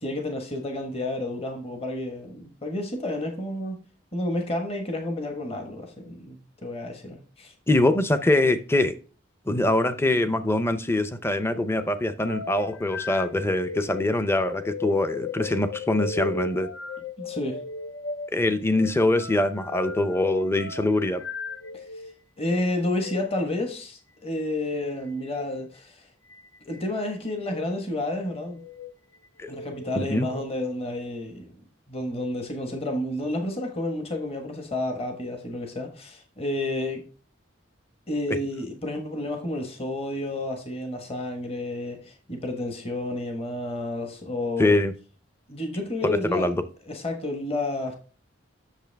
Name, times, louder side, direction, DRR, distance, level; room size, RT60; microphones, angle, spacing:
voice 1, 0.0-3.8 4.1-7.5 17.2-17.6 21.7-21.8 22.4-26.1 26.6-28.6 29.5-31.6 31.9-37.0 38.1-44.8 45.5-46.5 46.9-48.0, left 1 dB, 30° left, 1.3 m, -30 dB
voice 2, 7.7-8.9 9.5-16.7 18.3-21.2 29.4-29.5 30.0-30.3 44.6-44.9 46.1-46.6, left 2 dB, 15° left, 0.6 m, -23 dB
midrange distortion, 12.2-22.1 22.9-23.2 25.2-25.5 26.3-26.8 27.4-27.7 28.4-28.9 29.4-30.5, left 4 dB, 70° left, 0.7 m, -36 dB
8.1 x 6.7 x 3.4 m
head